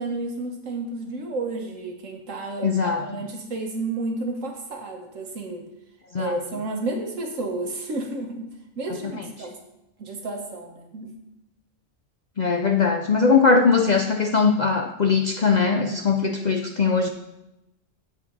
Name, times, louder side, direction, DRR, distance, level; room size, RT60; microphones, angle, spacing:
voice 1, 0.0-5.7 6.1-8.5 8.8-9.6 10.0-11.1, right 2 dB, 75° right, 2 dB, 1.7 m, -31 dB
voice 2, 2.6-3.0 6.1-6.4 12.4-17.1, left 5 dB, 55° left, 4 dB, 0.5 m, -20 dB
8.4 x 7.3 x 4.0 m, 0.90 s
omnidirectional pair, 1.3 m